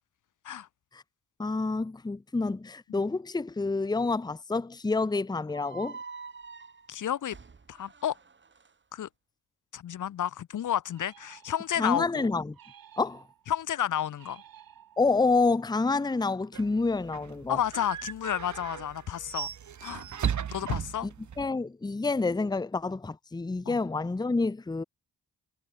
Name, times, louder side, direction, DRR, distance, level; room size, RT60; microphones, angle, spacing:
voice 1, 1.4-6.0 11.8-12.6 13.0-13.3 15.0-17.6 21.0-21.1 21.4-24.8, left 3 dB, 10° left, 0.8 m, -28 dB
sound 1, 5.5-8.7, right 5 dB, 30° right, 2.7 m, -46 dB
voice 2, 6.9-7.4 7.7-8.2 8.9-9.1 9.7-12.3 13.5-14.4 17.5-19.5 19.8-20.0 20.5-21.1 23.7-23.8, left 10 dB, 60° left, 1.0 m, -31 dB
sound 2, 10.9-12.0 12.5-13.6 14.2-15.3, right 10 dB, 70° right, 3.9 m, -55 dB
sound 3, 16.5-21.5, right 8 dB, 55° right, 2.0 m, -36 dB
cardioid pair, 90°, 36 cm